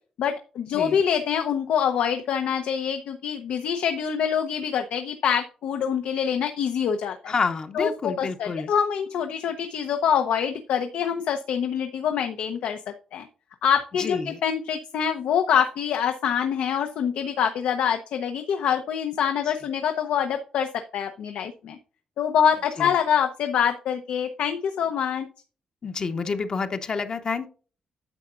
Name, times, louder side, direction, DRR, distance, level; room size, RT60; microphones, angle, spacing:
voice 1, 0.2-7.3 7.7-12.8 13.1-13.3 13.6-21.8 22.2-25.3, left 8 dB, 90° left, 6 dB, 0.8 m, -25 dB
voice 2, 7.3-8.7 14.0-14.4 19.5-19.6 22.8-22.9 25.8-27.5, left 4 dB, 35° left, 8 dB, 0.7 m, -28 dB
9.8 x 6.8 x 2.5 m, 0.38 s
wide cardioid pair, 160°, 2 cm